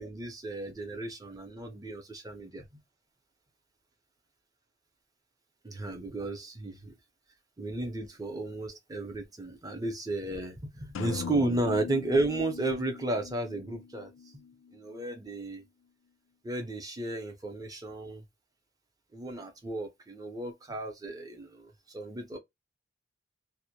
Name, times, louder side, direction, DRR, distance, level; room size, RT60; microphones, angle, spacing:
voice 1, 0.0-2.7 5.6-6.9 7.6-14.4 14.7-15.6 16.4-18.2 19.1-22.4, right 2 dB, 20° right, 0.6 m, -34 dB
sound 1, 10.9-14.7, left 6 dB, 70° left, 0.4 m, -40 dB
2.1 x 2.0 x 2.8 m
head